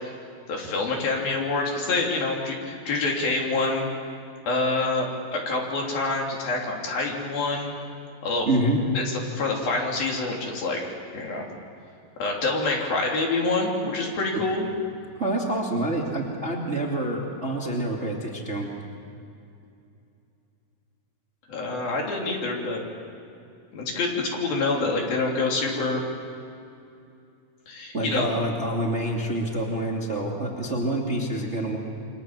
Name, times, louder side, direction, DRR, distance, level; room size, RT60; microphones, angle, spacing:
voice 1, 0.5-3.9 4.5-7.7 8.2-8.5 8.9-11.5 12.2-14.7 21.5-22.8 23.7-26.0 27.7-28.3, left 3 dB, 65° left, 0 dB, 5.0 m, -26 dB
voice 2, 8.5-8.8 15.2-18.7 27.9-31.8, right 1 dB, 20° right, -1 dB, 2.1 m, -27 dB
29.0 x 24.5 x 7.5 m, 2.7 s
omnidirectional pair, 4.5 m